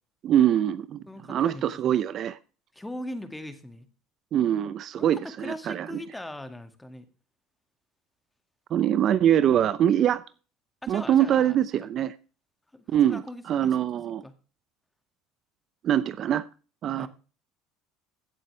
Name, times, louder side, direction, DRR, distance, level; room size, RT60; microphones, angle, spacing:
voice 1, 0.2-2.4 4.3-6.0 8.7-10.2 10.9-12.1 12.9-13.2 13.5-14.2 15.8-16.5 16.8-17.1, right 10 dB, 50° right, 15 dB, 0.7 m, -23 dB
voice 2, 1.1-1.9 2.7-3.9 5.0-5.1 5.4-7.1 10.8-11.6 12.7-13.8 14.2-14.3 17.0-17.1, left 1 dB, 10° left, 9 dB, 2.0 m, -40 dB
16.0 x 7.6 x 3.3 m, 0.36 s
supercardioid pair, 95°, 0 cm